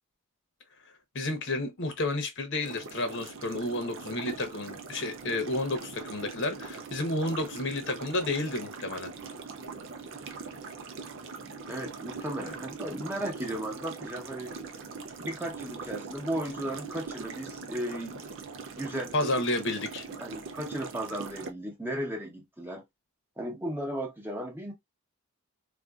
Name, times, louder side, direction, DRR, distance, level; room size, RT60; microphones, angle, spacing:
voice 1, 1.1-9.1 19.1-20.1, left 2 dB, 60° left, 0.9 m, -31 dB
sound 1, 2.6-21.5, right 4 dB, 60° right, 0.5 m, -42 dB
voice 2, 11.4-14.6 15.2-18.2 18.7-19.3 20.2-22.8 23.4-24.7, right 1 dB, 10° right, 0.8 m, -35 dB
3.6 x 2.6 x 2.3 m
head